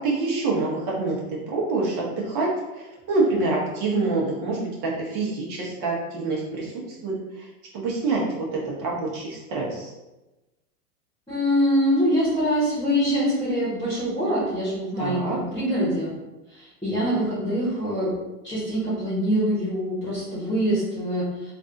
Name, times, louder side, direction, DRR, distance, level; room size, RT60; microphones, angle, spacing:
voice 1, 0.0-2.5 2.8-7.1 7.7-9.9 15.0-15.4, right 3 dB, 45° right, -4 dB, 1.3 m, -26 dB
voice 2, 11.3-16.1 16.5-18.1 18.4-21.5, equal, 10° left, -8 dB, 1.3 m, -24 dB
3.3 x 2.6 x 3.9 m, 1.0 s
hypercardioid pair, 125°, 46 cm